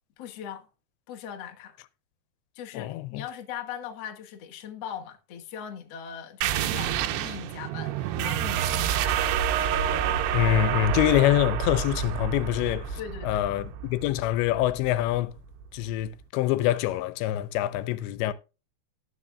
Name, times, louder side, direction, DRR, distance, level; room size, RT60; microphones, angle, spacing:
voice 1, 0.2-0.7 1.1-1.8 2.5-9.4 13.0-13.5, left 9 dB, 55° left, 1.8 m, -40 dB
voice 2, 2.7-3.2 10.3-15.4 15.7-18.3, left 14 dB, 90° left, 3.0 m, -25 dB
sound 1, 6.4-15.6, right 9 dB, 80° right, 2.7 m, -28 dB
18.5 x 6.6 x 2.3 m
omnidirectional pair, 5.0 m